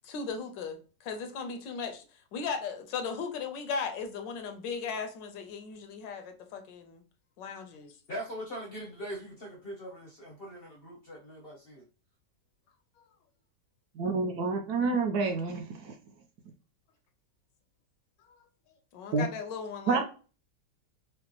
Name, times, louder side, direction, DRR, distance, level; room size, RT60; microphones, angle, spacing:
voice 1, 0.0-2.0 2.3-7.0 7.4-7.9 18.3-18.4 18.9-20.0, left 5 dB, 80° left, 1.4 m, -37 dB
voice 2, 8.1-11.8, equal, 50° left, 0.7 m, -41 dB
voice 3, 14.0-15.9 19.1-19.3 19.9-20.0, right 4 dB, 70° right, 1.2 m, -28 dB
4.9 x 2.1 x 2.9 m
omnidirectional pair, 1.9 m